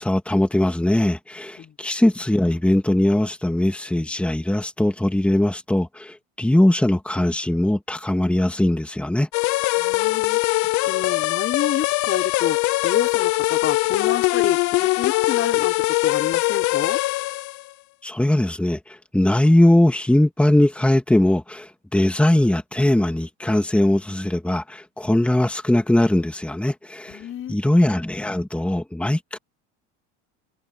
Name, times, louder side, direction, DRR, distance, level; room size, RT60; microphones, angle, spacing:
voice 1, 0.0-9.3 18.0-29.4, left 1 dB, 5° left, 2.5 m, -20 dB
sound 1, 9.3-17.6, left 21 dB, 50° left, 0.7 m, -22 dB
voice 2, 9.8-10.4 10.9-12.6 12.8-17.0 27.1-27.6, left 9 dB, 35° left, 5.7 m, -29 dB
supercardioid pair, 125°, 37 cm